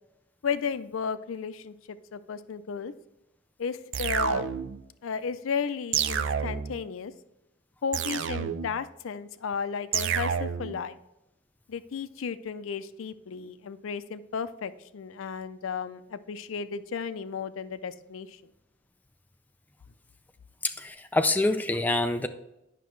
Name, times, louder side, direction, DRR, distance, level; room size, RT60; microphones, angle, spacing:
voice 1, 0.4-2.9 3.6-4.5 5.0-7.1 7.8-11.0 11.7-18.4, left 6 dB, 85° left, 13 dB, 0.4 m, -34 dB
sound 1, 3.9-4.8 5.9-6.8 7.9-8.8 9.9-10.8, right 8 dB, 65° right, 0.4 m, -29 dB
voice 2, 20.6-22.3, left 2 dB, 10° left, 7 dB, 0.3 m, -26 dB
9.1 x 5.8 x 3.1 m, 0.90 s
head